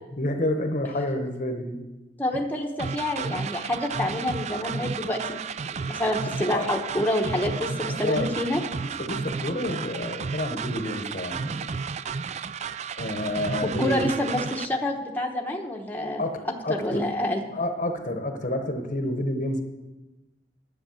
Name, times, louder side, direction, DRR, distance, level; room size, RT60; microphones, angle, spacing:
voice 1, 0.1-1.8 2.3-2.5 6.2-6.7 7.5-7.6 7.9-8.4 8.7-11.7 13.0-14.1 16.2-17.1 17.5-19.6, left 1 dB, 45° left, 6 dB, 1.0 m, -29 dB
voice 2, 2.2-5.4 5.7-8.6 13.8-16.2 16.7-17.4, left 1 dB, 10° left, 0 dB, 1.0 m, -27 dB
sound 1, 2.8-14.7, right 5 dB, 35° right, 0.3 m, -33 dB
10.5 x 8.6 x 7.1 m, 1.1 s
head